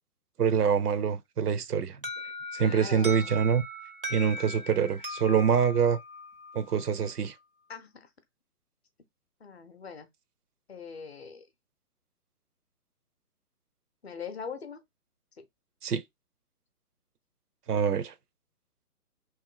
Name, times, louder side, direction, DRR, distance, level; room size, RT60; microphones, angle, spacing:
voice 1, 0.4-2.0 2.5-3.6 4.1-6.0 6.5-7.3 15.8-16.0 17.7-18.1, right 7 dB, 90° right, 0.7 m, -25 dB
Alarm, 2.0-6.8, equal, 40° right, 0.4 m, -39 dB
voice 2, 2.6-3.4 7.7-8.1 9.4-10.1 10.7-11.4 14.0-14.8 15.4-15.5, left 6 dB, 45° left, 0.6 m, -42 dB
3.1 x 2.6 x 3.7 m
hypercardioid pair, 170°, 45 cm